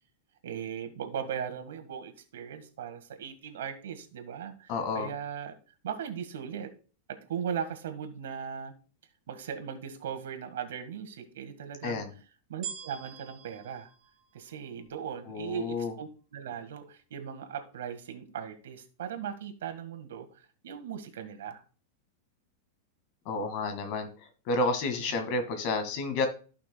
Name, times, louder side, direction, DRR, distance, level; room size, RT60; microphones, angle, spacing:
voice 1, 0.4-5.5 5.8-6.7 7.1-8.7 9.3-12.0 12.5-13.9 14.3-20.3 20.6-21.6, right 8 dB, 90° right, 8 dB, 1.6 m, -38 dB
voice 2, 4.7-5.1 11.8-12.1 15.3-15.9 23.3-24.1 24.5-26.3, left 3 dB, 45° left, 8 dB, 1.8 m, -30 dB
sound 1, 12.6-15.0 15.7-15.8, right 8 dB, 25° right, 1.3 m, -44 dB
14.5 x 5.9 x 2.2 m, 0.36 s
supercardioid pair, 155°, 0 cm